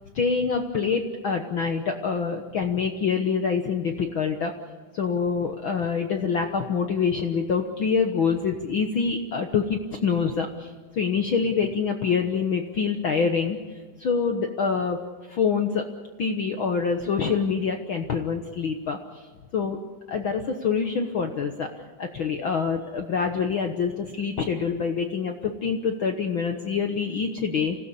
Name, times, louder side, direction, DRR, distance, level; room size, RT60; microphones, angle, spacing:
voice 1, 0.1-4.5 4.9-13.6 14.0-15.0 15.3-15.8 16.2-19.3 19.5-19.8 20.1-27.8, left 5 dB, 80° left, 4 dB, 1.1 m, -26 dB
26.0 x 17.0 x 8.3 m, 1.4 s
omnidirectional pair, 4.1 m